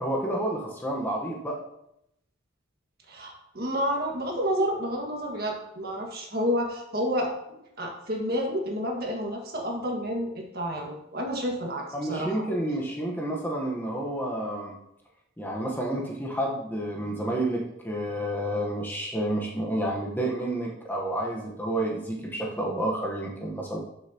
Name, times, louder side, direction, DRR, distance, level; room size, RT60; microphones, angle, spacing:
voice 1, 0.0-1.6 11.9-14.7 15.4-23.8, right 1 dB, 10° left, -2 dB, 1.1 m, -30 dB
voice 2, 3.1-12.4, equal, 45° right, 0 dB, 1.9 m, -30 dB
12.0 x 6.7 x 3.0 m, 0.81 s
head